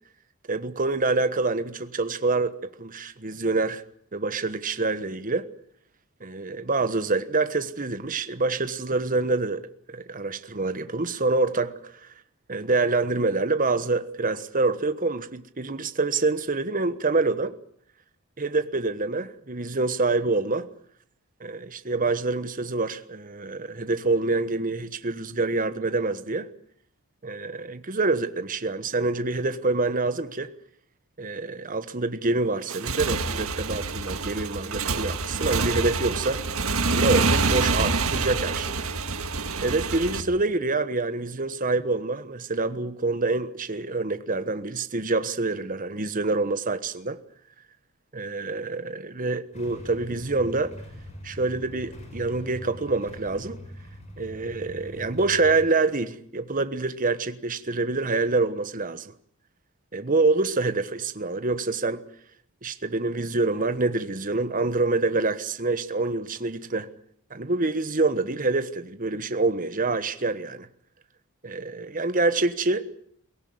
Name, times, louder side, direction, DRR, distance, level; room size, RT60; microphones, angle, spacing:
voice 1, 0.5-3.8 4.1-5.4 6.2-12.1 12.5-17.5 18.4-20.7 21.4-26.5 27.2-30.5 31.2-36.4 36.9-38.8 39.6-47.2 48.1-50.7 51.2-53.6 54.2-59.1 59.9-62.0 62.6-66.9 67.3-70.7 71.4-72.9, right 3 dB, 40° right, 1.3 m, -26 dB
Motorcycle / Engine, 32.6-40.2, right 3 dB, 70° right, 1.7 m, -26 dB
Motorcycle / Engine starting / Idling, 49.5-55.7, equal, 30° left, 6.2 m, -42 dB
23.0 x 18.0 x 9.6 m
head